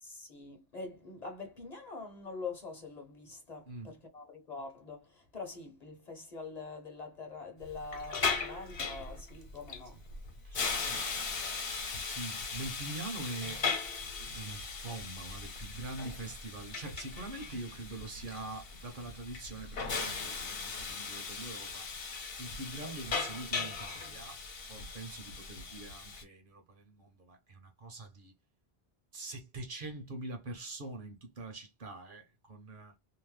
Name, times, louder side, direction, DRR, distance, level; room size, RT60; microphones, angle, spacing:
voice 1, 0.0-10.0 10.6-10.9 11.4-11.5, left 4 dB, 40° left, 0.8 m, -45 dB
Hiss, 7.6-26.2, left 4 dB, 65° left, 1.1 m, -38 dB
voice 2, 10.4-11.1 12.0-13.7 14.3-21.9 22.4-28.3 29.1-32.9, right 2 dB, 55° right, 0.9 m, -44 dB
2.8 x 2.1 x 3.1 m
omnidirectional pair, 1.1 m